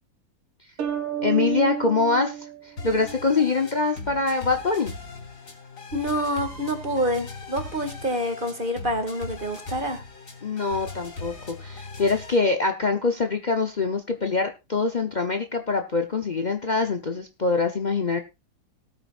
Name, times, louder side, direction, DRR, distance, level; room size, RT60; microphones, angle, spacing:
sound 1, 0.8-3.4, right 8 dB, 80° right, 2.7 m, -31 dB
voice 1, 1.2-4.9 10.4-18.2, left 4 dB, 80° left, 5 dB, 0.4 m, -24 dB
sound 2, 2.8-12.4, left 3 dB, 35° left, 3.1 m, -39 dB
voice 2, 5.9-10.0, equal, 25° right, 7 dB, 2.1 m, -27 dB
19.5 x 8.8 x 2.5 m, 0.26 s
omnidirectional pair, 2.4 m